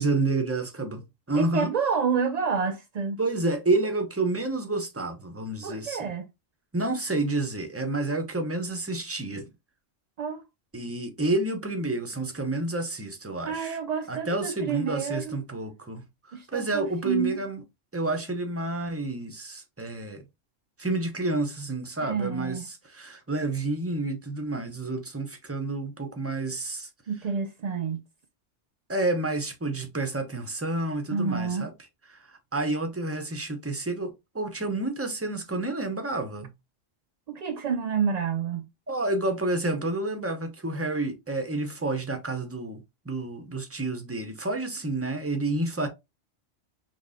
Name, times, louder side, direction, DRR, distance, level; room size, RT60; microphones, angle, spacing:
voice 1, 0.0-1.7 3.2-6.1 6.7-9.5 10.7-13.8 14.1-17.6 17.9-20.2 20.8-26.9 28.9-31.7 32.1-36.5 38.9-45.9, right 2 dB, 15° right, 0.7 m, -29 dB
voice 2, 1.3-3.2 5.6-6.3 10.2-10.4 13.5-15.4 16.3-17.4 22.0-22.6 27.1-28.0 31.1-31.7 37.3-38.7, right 6 dB, 75° right, 0.3 m, -29 dB
5.8 x 3.0 x 2.6 m
omnidirectional pair, 1.2 m